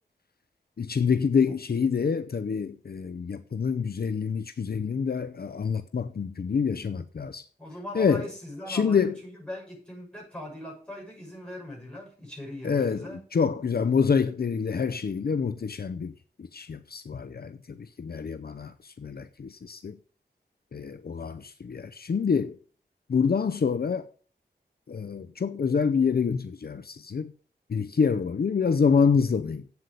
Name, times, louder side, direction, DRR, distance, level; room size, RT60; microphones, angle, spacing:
voice 1, 0.8-7.4 7.9-8.3 8.7-9.2 12.6-20.0 20.7-22.6 23.1-24.1 24.9-27.3 27.7-29.7, left 6 dB, 60° left, 0.6 m, -27 dB
voice 2, 7.6-13.2, left 1 dB, 5° left, 6.8 m, -40 dB
8.3 x 7.9 x 6.6 m
wide cardioid pair, 95°, 18 cm